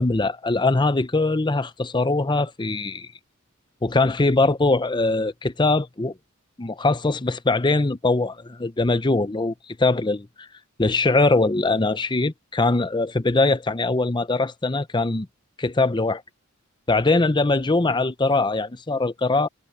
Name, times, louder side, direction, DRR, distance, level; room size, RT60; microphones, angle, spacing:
voice 1, 0.0-3.1 3.8-6.1 6.6-10.5 10.8-15.3 15.6-16.2 16.9-19.5, left 2 dB, 20° left, 0.7 m, -22 dB
head